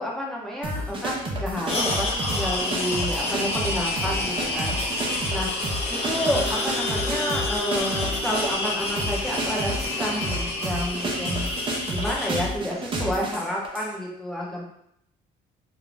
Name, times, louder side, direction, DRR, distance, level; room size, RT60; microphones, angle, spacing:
voice 1, 0.0-4.8 5.3-5.5 5.9-11.5 11.9-14.6, equal, ahead, -3 dB, 0.7 m, -30 dB
sound 1, 0.6-13.9, right 1 dB, 30° right, 0.6 m, -31 dB
sound 2, 1.6-12.5, left 2 dB, 35° left, 0.8 m, -29 dB
sound 3, 4.7-11.7, left 3 dB, 75° left, 0.6 m, -38 dB
2.5 x 2.1 x 3.2 m, 0.73 s
cardioid pair, 110°, 17 cm